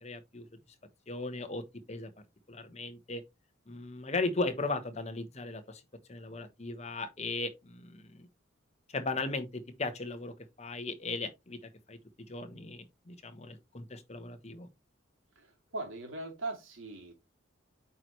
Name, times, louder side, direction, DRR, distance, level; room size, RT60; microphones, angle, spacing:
voice 1, 0.0-0.4 1.1-1.6 1.9-2.1 2.5-3.2 3.7-5.8 6.1-8.3 8.9-11.6 11.9-12.0 12.3-14.7, left 3 dB, 30° left, 1.1 m, -37 dB
voice 2, 15.4-17.1, right 2 dB, 75° right, 2.8 m, -40 dB
8.6 x 4.6 x 3.2 m
head